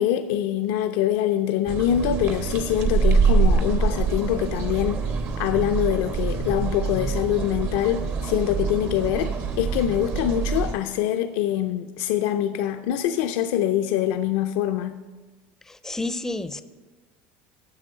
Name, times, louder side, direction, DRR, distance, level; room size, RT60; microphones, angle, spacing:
voice 1, 0.0-5.1 5.4-15.0, left 11 dB, 75° left, 8 dB, 0.4 m, -24 dB
sound 1, 1.7-10.7, right 5 dB, 50° right, 1.0 m, -25 dB
voice 2, 15.7-16.6, left 2 dB, 10° left, 12 dB, 0.5 m, -30 dB
7.7 x 6.1 x 6.3 m, 1.2 s
supercardioid pair, 110°, 5 cm